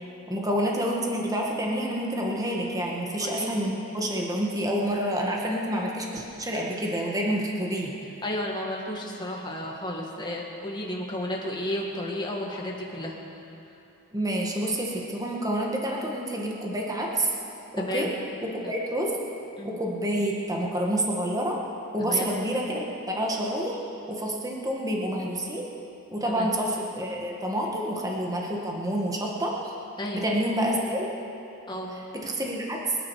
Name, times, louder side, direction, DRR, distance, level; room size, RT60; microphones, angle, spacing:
voice 1, 0.3-7.9 14.1-17.3 17.7-18.1 18.4-19.1 19.6-21.6 21.9-23.8 24.1-25.7 26.1-29.5 30.1-31.1 32.1-33.0, right 1 dB, 15° right, -2 dB, 1.6 m, -28 dB
voice 2, 3.2-3.5 8.2-13.1 17.8-18.1 19.6-19.8 22.0-22.3 26.2-26.5 30.0-30.2 31.7-31.9, left 1 dB, 20° left, -2 dB, 2.0 m, -32 dB
24.5 x 10.0 x 4.8 m, 2.8 s
head